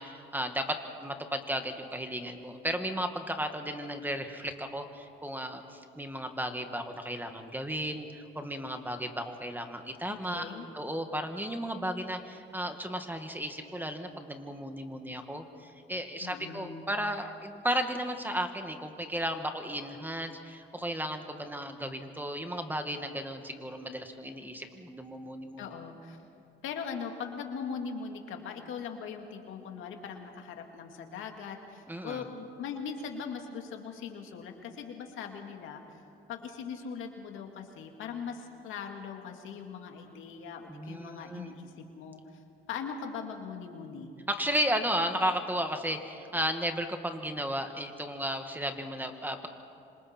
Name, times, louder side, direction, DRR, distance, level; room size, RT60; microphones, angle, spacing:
voice 1, 0.0-25.8 31.9-32.2 40.7-41.5 44.3-49.5, equal, 10° right, 6 dB, 1.8 m, -34 dB
voice 2, 10.1-10.7 16.2-16.9 25.6-26.2 26.6-35.8 36.3-42.4 42.7-44.1, left 6 dB, 85° left, 4 dB, 2.2 m, -40 dB
26.5 x 26.0 x 4.4 m, 2.7 s
cardioid pair, 90°, 20 cm